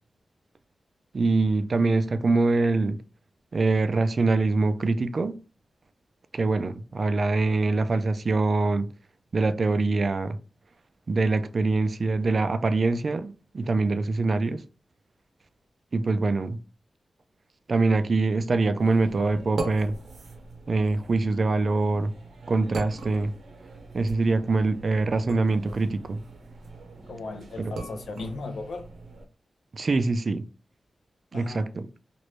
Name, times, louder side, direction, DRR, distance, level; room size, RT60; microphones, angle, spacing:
voice 1, 1.1-3.0 3.5-5.4 6.3-8.9 9.3-10.4 11.1-14.6 15.9-16.6 17.7-20.0 20.7-22.1 22.5-23.3 23.9-26.2 27.6-27.7 29.7-30.5 31.3-31.9, right 3 dB, 45° right, 0.3 m, -24 dB
sound 1, 18.8-29.2, right 3 dB, 85° right, 0.7 m, -40 dB
voice 2, 27.1-28.9 31.3-31.7, left 3 dB, 85° left, 0.5 m, -36 dB
3.1 x 2.5 x 3.1 m
wide cardioid pair, 115°, 0 cm